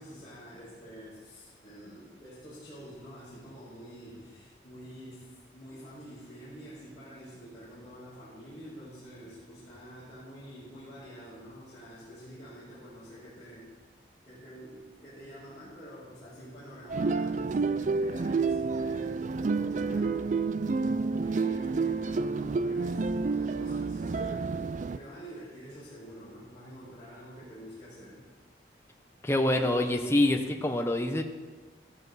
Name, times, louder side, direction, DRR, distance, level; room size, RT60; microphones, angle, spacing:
voice 1, 0.0-13.7 14.2-20.2 21.2-24.5 24.9-28.2, equal, 30° left, -12 dB, 5.5 m, -47 dB
sound 1, 16.9-25.0, right 4 dB, 45° right, 0.4 m, -29 dB
voice 2, 29.2-31.2, left 1 dB, 15° left, 4 dB, 0.9 m, -26 dB
14.0 x 13.5 x 4.1 m, 1.3 s
head